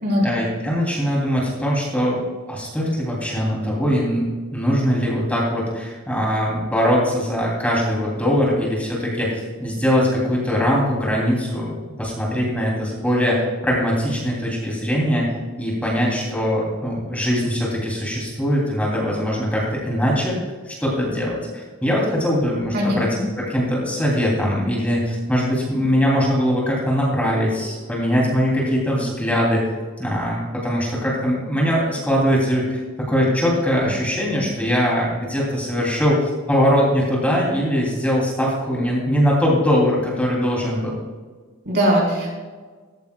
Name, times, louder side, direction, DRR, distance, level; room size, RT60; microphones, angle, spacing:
voice 1, 0.2-2.2 2.5-20.4 20.6-23.1 23.4-29.6 30.0-41.0, equal, 5° left, -4 dB, 2.8 m, -21 dB
voice 2, 41.7-42.3, equal, 55° right, -2 dB, 4.0 m, -19 dB
15.0 x 14.5 x 2.3 m, 1.5 s
head